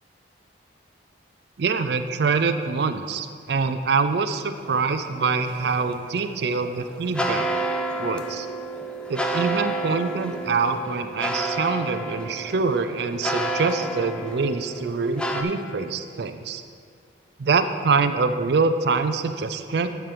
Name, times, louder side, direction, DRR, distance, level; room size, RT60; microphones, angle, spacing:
voice 1, 1.6-7.5 8.0-8.5 9.1-16.6 17.4-19.9, right 4 dB, 60° right, 9 dB, 0.4 m, -25 dB
sound 1, 4.5-15.4, right 1 dB, 5° left, 0.4 m, -30 dB
11.5 x 4.5 x 5.0 m, 2.2 s
head